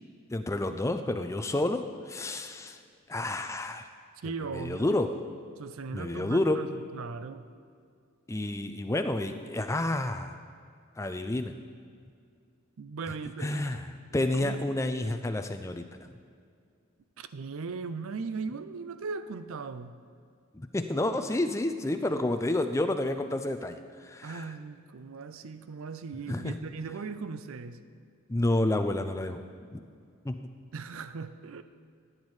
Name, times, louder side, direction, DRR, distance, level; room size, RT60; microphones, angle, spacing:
voice 1, 0.3-2.8 3.1-3.9 4.5-5.1 5.9-6.6 8.3-10.4 11.0-11.5 13.4-13.9 14.1-16.1 20.5-24.5 26.3-26.6 28.3-29.4 29.7-29.8 30.2-30.5, left 1 dB, 15° left, 8 dB, 0.4 m, -30 dB
voice 2, 4.2-5.0 5.6-7.5 12.8-13.8 14.3-14.7 17.2-20.0 24.2-27.8 30.7-31.6, right 4 dB, 65° right, 12 dB, 0.4 m, -38 dB
14.5 x 8.9 x 3.2 m, 2.3 s
head